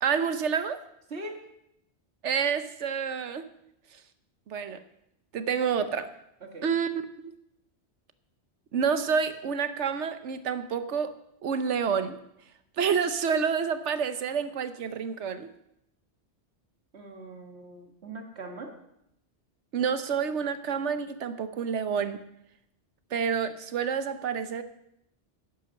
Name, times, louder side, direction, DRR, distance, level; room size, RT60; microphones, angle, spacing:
voice 1, 0.0-0.8 2.2-3.4 4.5-4.8 5.3-6.1 6.6-6.9 8.7-11.1 11.4-12.2 12.8-15.5 19.7-22.2 23.1-24.6, right 6 dB, 85° right, 11 dB, 1.2 m, -28 dB
voice 2, 1.1-1.4 6.4-6.7 16.9-18.7, right 2 dB, 70° right, 3 dB, 2.1 m, -41 dB
11.0 x 10.5 x 6.4 m, 0.79 s
omnidirectional pair, 1.2 m